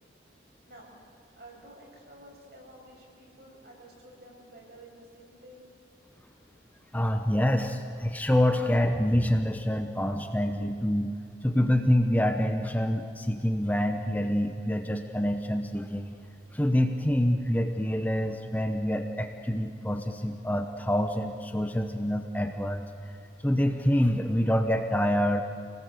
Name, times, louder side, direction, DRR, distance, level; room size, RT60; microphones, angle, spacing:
voice 1, 1.2-5.6, right 1 dB, 55° right, -2 dB, 6.4 m, -51 dB
voice 2, 6.9-16.1 16.5-22.9 23.4-25.4, equal, 10° left, 5 dB, 0.8 m, -26 dB
26.5 x 19.0 x 8.1 m, 2.5 s
head